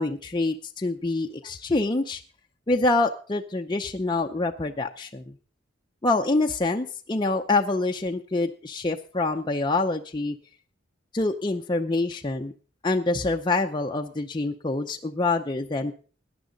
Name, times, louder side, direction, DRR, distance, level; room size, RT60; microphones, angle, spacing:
voice 1, 0.0-2.2 2.7-5.3 6.0-10.4 11.1-12.5 12.8-15.9, left 2 dB, 25° left, 2 dB, 0.6 m, -26 dB
17.5 x 10.5 x 3.9 m, 0.40 s
head